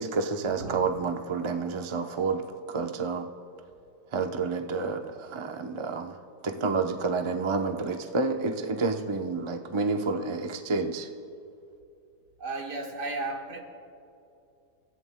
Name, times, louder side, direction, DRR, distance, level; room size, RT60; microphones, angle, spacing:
voice 1, 0.0-3.3 4.1-6.2 6.4-11.1, right 4 dB, 50° right, 4 dB, 0.3 m, -29 dB
voice 2, 12.4-13.6, right 2 dB, 75° right, -1 dB, 2.4 m, -34 dB
29.5 x 14.5 x 2.2 m, 2.6 s
omnidirectional pair, 1.8 m